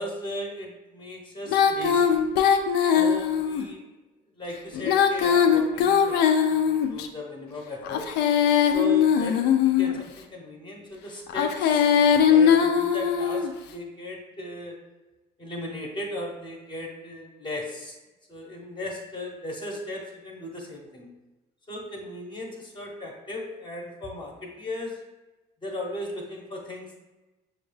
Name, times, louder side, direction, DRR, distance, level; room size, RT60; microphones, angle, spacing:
voice 1, 0.0-2.2 2.9-3.8 4.4-8.1 8.7-14.8 15.4-18.0 18.3-21.1 21.7-25.0 25.6-27.0, left 1 dB, 30° left, -1 dB, 0.8 m, -37 dB
Female singing, 1.5-3.6 4.7-7.1 7.8-10.0 11.3-13.5, left 8 dB, 80° left, 0.4 m, -21 dB
6.2 x 2.3 x 3.2 m, 1.1 s
cardioid pair, 110°, 17 cm